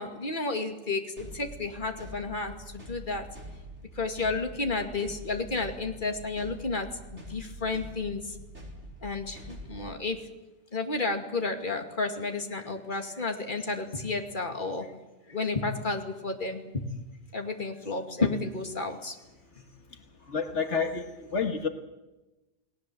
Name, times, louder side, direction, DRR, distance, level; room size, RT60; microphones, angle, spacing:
voice 1, 0.0-3.3 4.0-8.4 9.0-10.2 10.7-14.9 15.3-16.8 17.3-19.2 19.6-19.7, left 3 dB, 45° left, 5 dB, 2.6 m, -32 dB
sound 1, 1.2-9.9, right 1 dB, 75° right, 5.7 m, -45 dB
voice 2, 20.3-21.1 21.3-21.7, left 5 dB, 85° left, 6 dB, 1.9 m, -28 dB
29.5 x 19.0 x 7.9 m, 1.1 s
omnidirectional pair, 1.2 m